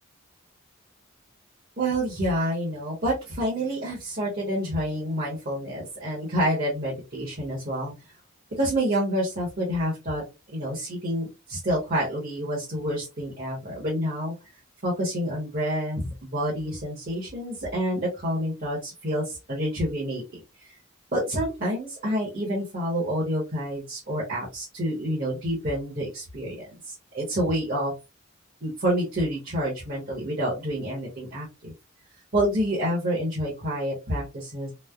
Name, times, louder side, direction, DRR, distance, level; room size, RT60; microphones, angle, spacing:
voice 1, 1.8-7.9 8.6-10.2 10.5-14.3 14.8-20.4 21.1-27.9 28.6-31.7 32.3-34.7, equal, 45° right, -6 dB, 1.0 m, -28 dB
3.1 x 2.0 x 2.3 m, 0.26 s
head